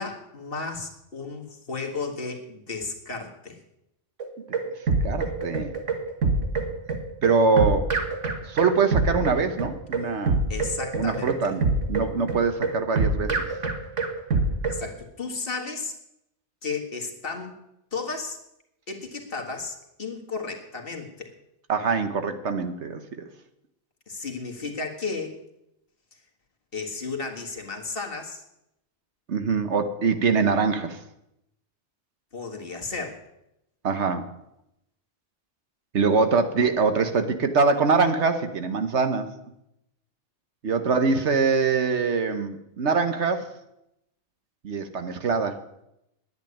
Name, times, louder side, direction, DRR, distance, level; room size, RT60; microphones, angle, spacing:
voice 1, 0.0-3.6 10.5-11.6 14.7-15.9 16.6-17.6 17.9-18.4 18.9-21.3 24.1-25.4 26.7-28.4 32.3-33.2, left 4 dB, 50° left, 2 dB, 2.0 m, -33 dB
sound 1, 4.2-14.8, right 3 dB, 90° right, 1.9 m, -25 dB
voice 2, 5.0-5.8 7.2-7.9 8.5-10.4 10.9-11.6 11.9-13.4 21.7-23.0 29.3-31.0 33.8-34.3 35.9-39.3 40.6-43.5 44.6-45.6, right 4 dB, 70° right, 8 dB, 1.4 m, -23 dB
10.5 x 8.2 x 9.9 m, 0.84 s
omnidirectional pair, 1.2 m